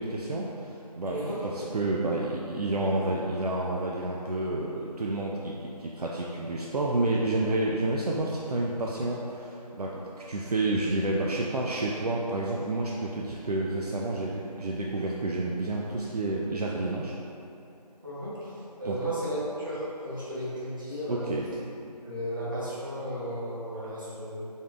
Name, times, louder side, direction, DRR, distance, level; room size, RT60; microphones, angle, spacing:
voice 1, 0.0-17.1 18.8-19.0 21.1-21.5, right 2 dB, 65° right, -3 dB, 0.4 m, -30 dB
voice 2, 1.1-1.4 18.0-18.5 18.8-21.3 22.0-24.5, equal, 30° right, -11 dB, 0.9 m, -34 dB
3.8 x 3.6 x 2.4 m, 2.8 s
figure-of-eight pair, 175°, 21 cm